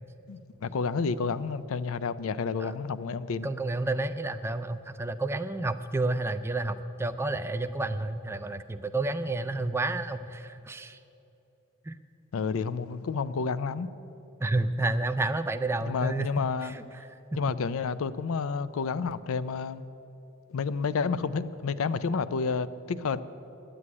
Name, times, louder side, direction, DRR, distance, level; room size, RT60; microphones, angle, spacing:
voice 1, 0.3-3.5 12.3-13.9 15.9-16.7 17.3-19.8 20.5-23.2, left 5 dB, 65° left, 15 dB, 0.4 m, -30 dB
voice 2, 3.4-11.0 11.9-12.0 14.4-16.3 16.6-16.8 17.3-17.4, right 2 dB, 10° right, 9 dB, 0.3 m, -30 dB
9.7 x 7.8 x 9.6 m, 2.9 s
head